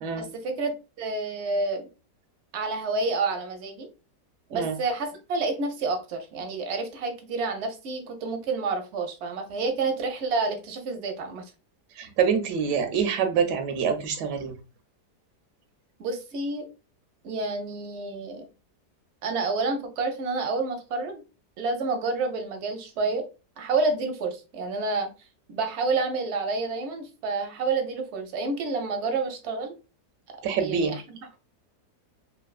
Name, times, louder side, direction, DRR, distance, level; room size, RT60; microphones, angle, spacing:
voice 1, 0.2-1.9 2.5-3.9 4.5-11.4 16.0-16.7 17.2-18.5 19.2-21.2 21.6-23.2 23.6-25.1 25.5-29.8 30.6-31.4, right 3 dB, 65° right, 5 dB, 0.7 m, -29 dB
voice 2, 12.0-14.5 30.4-30.9, right 6 dB, 85° right, 6 dB, 1.2 m, -25 dB
3.2 x 2.6 x 2.3 m, 0.31 s
omnidirectional pair, 1.8 m